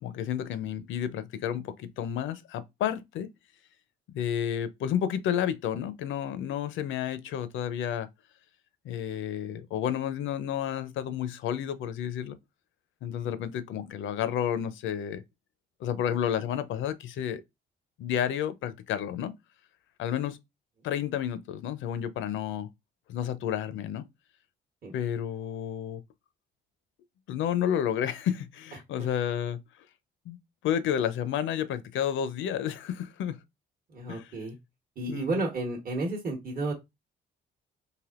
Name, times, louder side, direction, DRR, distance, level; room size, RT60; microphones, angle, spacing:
voice 1, 0.0-3.3 4.1-8.1 8.8-12.4 13.0-15.2 15.8-17.4 18.0-19.3 20.0-20.4 20.8-22.7 23.1-24.0 24.9-26.0 27.3-29.6 30.3-30.4 30.6-33.4 34.1-34.3 35.1-35.4, left 9 dB, 75° left, 0.5 m, -31 dB
voice 2, 33.9-34.6 35.0-36.7, right 2 dB, 45° right, 1.0 m, -32 dB
3.3 x 2.5 x 2.4 m
cardioid pair, 90°, 20 cm